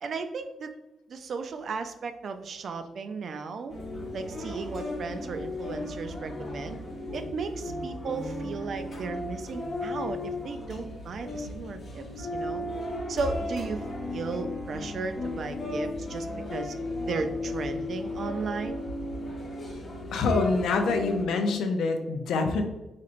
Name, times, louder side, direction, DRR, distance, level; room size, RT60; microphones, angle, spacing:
voice 1, 0.0-0.7 1.1-3.7 4.1-6.8 7.1-12.7 13.1-16.7 17.1-18.8, right 4 dB, 50° right, 8 dB, 0.3 m, -35 dB
sound 1, 3.7-21.2, left 2 dB, 35° left, 0.9 m, -35 dB
Bowed string instrument, 12.0-17.0, equal, 15° right, 0.8 m, -44 dB
voice 2, 20.1-22.6, left 3 dB, 85° left, 5 dB, 0.5 m, -25 dB
4.3 x 2.9 x 2.5 m, 1.0 s
cardioid pair, 150°, 0 cm